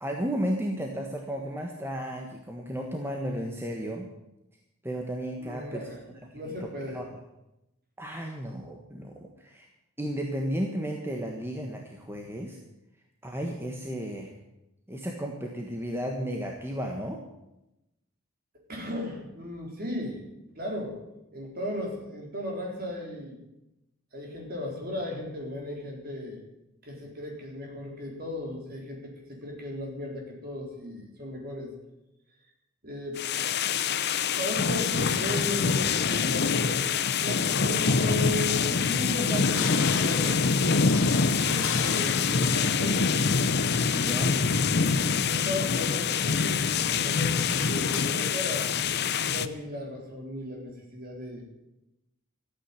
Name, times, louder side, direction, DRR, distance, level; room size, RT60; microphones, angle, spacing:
voice 1, 0.0-4.1 4.8-5.8 6.6-7.0 8.0-9.7 10.0-12.6 13.2-14.3 14.9-17.2 44.0-44.4, equal, 10° right, 1 dB, 1.4 m, -33 dB
voice 2, 5.4-6.0 6.3-7.0 18.7-20.2 20.6-21.0 21.3-23.4 24.1-26.4 26.8-31.7 32.8-33.2 34.3-40.4 41.0-43.1 44.8-51.5, left 1 dB, 40° right, 0 dB, 4.2 m, -36 dB
sound 1, 33.2-49.5, left 5 dB, 50° left, 0.7 m, -25 dB
sound 2, 38.7-48.0, left 6 dB, 70° left, 1.6 m, -40 dB
14.0 x 9.1 x 9.7 m, 0.91 s
head